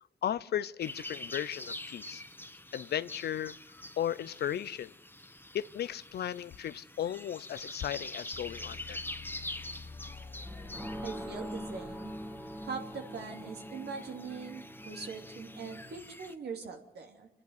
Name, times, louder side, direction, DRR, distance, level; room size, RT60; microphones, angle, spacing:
voice 1, 0.2-2.2 2.7-3.5 4.0-4.9 5.5-9.0, left 10 dB, 75° left, 17 dB, 0.7 m, -35 dB
sound 1, 0.8-16.3, left 1 dB, 10° left, 1.6 m, -46 dB
sound 2, 8.3-13.2, left 4 dB, 30° left, 1.1 m, -49 dB
sound 3, 10.4-16.0, equal, 10° right, 2.1 m, -43 dB
voice 2, 11.0-12.1 12.6-17.3, right 5 dB, 80° right, 2 dB, 2.9 m, -42 dB
26.0 x 11.0 x 9.5 m, 0.84 s
supercardioid pair, 45°, 17 cm